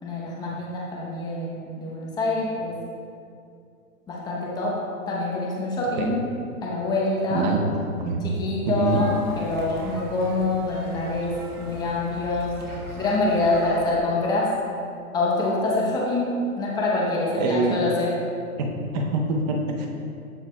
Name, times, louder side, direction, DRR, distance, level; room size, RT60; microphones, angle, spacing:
voice 1, 0.0-2.8 4.1-4.8 5.1-6.2 6.6-7.5 8.2-12.6 13.0-14.5 15.1-18.1, left 2 dB, 10° left, -4 dB, 0.8 m, -25 dB
voice 2, 7.3-8.2 8.7-9.1 17.4-17.8 18.6-18.7 18.9-19.9, right 2 dB, 30° right, 1 dB, 0.7 m, -24 dB
sound 1, 8.8-14.0, equal, 80° right, 1.6 m, -40 dB
13.0 x 4.6 x 2.3 m, 2.4 s
hypercardioid pair, 145°, 44 cm